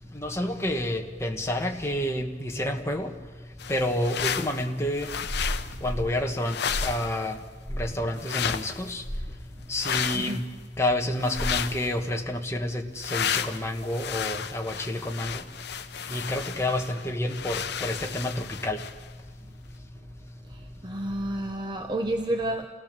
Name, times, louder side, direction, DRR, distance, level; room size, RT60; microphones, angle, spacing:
voice 1, 0.1-3.1 3.7-5.1 5.8-6.6 6.8-7.4 7.7-9.0 9.7-10.4 10.8-15.4 16.1-18.8, left 1 dB, 15° left, 2 dB, 1.4 m, -29 dB
sound 1, 3.6-4.7 4.9-5.8 6.4-7.3 8.2-8.9 9.8-10.4 11.2-11.9 13.0-19.0, left 8 dB, 60° left, 0.8 m, -33 dB
sound 2, 5.2-6.1 6.7-7.1 7.6-7.9 9.0-9.3 11.4-11.7, equal, 5° right, 2.5 m, -32 dB
voice 2, 20.4-22.7, right 1 dB, 25° right, 4 dB, 0.9 m, -30 dB
28.0 x 17.5 x 6.8 m, 1.4 s
head